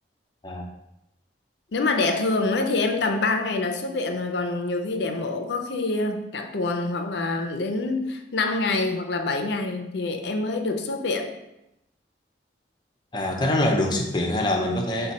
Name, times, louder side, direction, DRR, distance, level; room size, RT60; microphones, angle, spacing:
voice 1, 1.7-11.3, left 3 dB, 75° left, 6 dB, 0.5 m, -26 dB
voice 2, 13.1-15.1, left 1 dB, 25° left, 2 dB, 0.5 m, -24 dB
5.2 x 2.2 x 4.0 m, 0.87 s
head